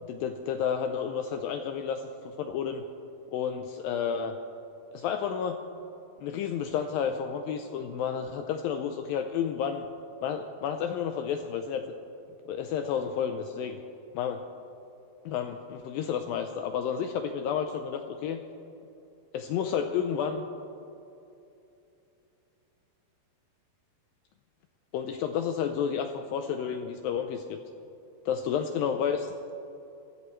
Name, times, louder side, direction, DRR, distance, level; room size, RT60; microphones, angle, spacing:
voice 1, 0.0-2.8 3.3-4.3 4.9-5.6 6.2-9.8 10.2-11.8 12.5-13.8 14.1-14.4 15.3-18.4 19.3-20.4 24.9-27.6 28.3-29.5, left 7 dB, 80° left, 6 dB, 2.2 m, -31 dB
22.5 x 15.5 x 3.1 m, 2.8 s
omnidirectional pair, 4.5 m